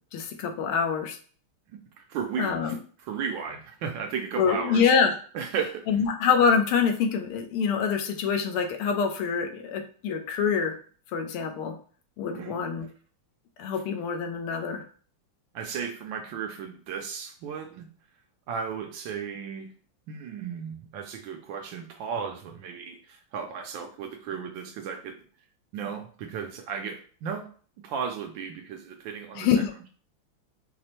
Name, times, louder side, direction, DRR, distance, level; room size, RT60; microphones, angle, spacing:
voice 1, 0.1-1.2 2.4-2.8 4.4-5.1 5.9-10.8 11.1-11.8 12.2-12.9 13.6-14.8 29.4-29.7, left 6 dB, 90° left, 5 dB, 1.6 m, -25 dB
voice 2, 1.7-4.9 5.3-6.0 12.3-12.6 15.5-17.9 18.5-19.7 20.1-25.2 25.7-27.5 27.8-29.9, right 6 dB, 70° right, 4 dB, 1.2 m, -35 dB
4.9 x 2.1 x 4.2 m, 0.43 s
omnidirectional pair, 2.3 m